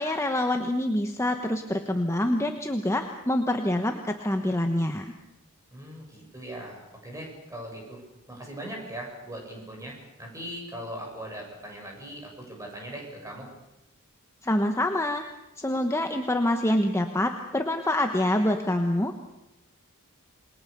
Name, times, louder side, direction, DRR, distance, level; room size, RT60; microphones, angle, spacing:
voice 1, 0.0-5.1 14.4-15.3 15.6-19.2, left 1 dB, 10° left, 5 dB, 1.2 m, -26 dB
voice 2, 5.7-8.0 8.3-13.5, right 1 dB, 15° right, 0 dB, 7.2 m, -40 dB
28.0 x 22.0 x 6.8 m, 0.88 s
head